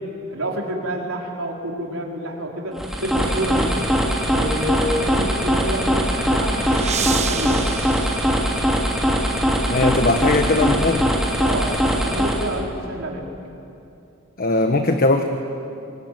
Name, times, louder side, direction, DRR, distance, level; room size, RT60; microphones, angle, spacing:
voice 1, 0.0-3.9 4.3-7.6 11.4-13.3, equal, 75° right, -1 dB, 4.5 m, -28 dB
sound 1, 2.7-12.7, equal, ahead, 3.3 m, -21 dB
sound 2, 6.1-9.2, right 7 dB, 35° right, 1.3 m, -31 dB
voice 2, 9.7-11.1 14.4-15.2, left 2 dB, 45° left, 5 dB, 1.4 m, -19 dB
26.5 x 22.5 x 9.4 m, 2.7 s
head